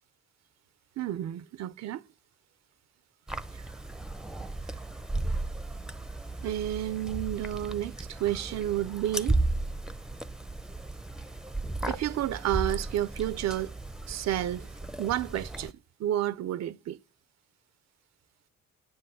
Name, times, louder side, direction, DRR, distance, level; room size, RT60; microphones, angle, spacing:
voice 1, 1.0-2.0 3.5-3.7 4.6-4.8 6.4-9.5 11.9-13.7 14.1-14.7 15.0-15.7 16.0-17.0, right 12 dB, 60° right, 0.5 m, -31 dB
sound 1, 3.3-15.7, right 2 dB, ahead, 0.6 m, -35 dB
9.9 x 7.8 x 7.7 m
cardioid pair, 90°, 30 cm